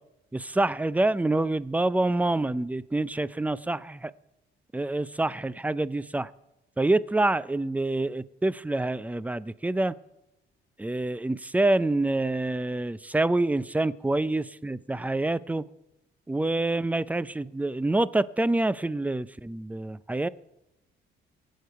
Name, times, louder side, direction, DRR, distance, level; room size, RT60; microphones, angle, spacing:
voice 1, 0.3-4.1 4.7-6.3 6.8-9.9 10.8-15.6 16.3-20.3, right 2 dB, 5° right, 0.4 m, -26 dB
23.0 x 8.4 x 4.7 m
cardioid pair, 90°, 20 cm